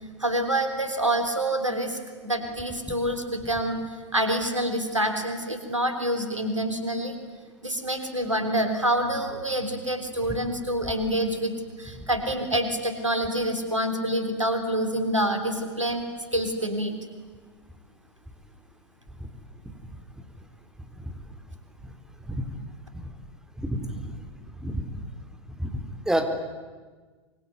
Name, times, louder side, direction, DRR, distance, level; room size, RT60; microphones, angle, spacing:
voice 1, 0.2-3.8 4.1-7.2 7.6-11.5 11.8-16.1 16.3-16.9, right 1 dB, 90° right, 7 dB, 3.7 m, -27 dB
voice 2, 23.6-24.1 24.6-25.0 25.6-26.3, right 1 dB, 5° right, 6 dB, 3.5 m, -29 dB
24.5 x 23.5 x 9.6 m, 1.4 s
figure-of-eight pair, 90°, 16 cm